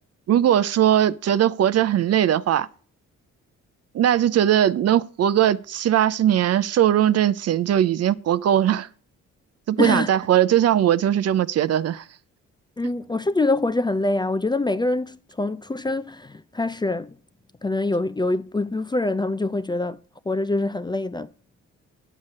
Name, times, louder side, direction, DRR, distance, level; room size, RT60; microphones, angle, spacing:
voice 1, 0.3-2.7 3.9-8.9 9.7-12.0, right 11 dB, 55° right, 0.6 m, -20 dB
voice 2, 9.8-10.1 12.8-17.2 17.6-20.0 20.3-21.3, left 2 dB, 15° left, 0.4 m, -24 dB
10.0 x 7.3 x 6.5 m
cardioid pair, 90°, 30 cm